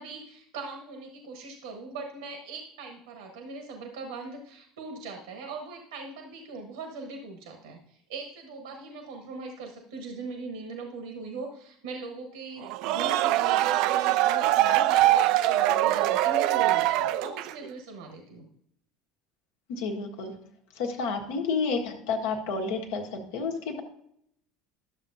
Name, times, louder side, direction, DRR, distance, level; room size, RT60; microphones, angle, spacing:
voice 1, 0.0-18.5, right 3 dB, 75° right, 3 dB, 1.2 m, -40 dB
sound 1, 12.6-17.7, right 14 dB, 60° right, 0.3 m, -23 dB
voice 2, 19.7-20.3 20.8-23.8, left 4 dB, 65° left, 2 dB, 1.4 m, -30 dB
12.0 x 7.2 x 2.7 m, 0.73 s
figure-of-eight pair, 70°, 0 cm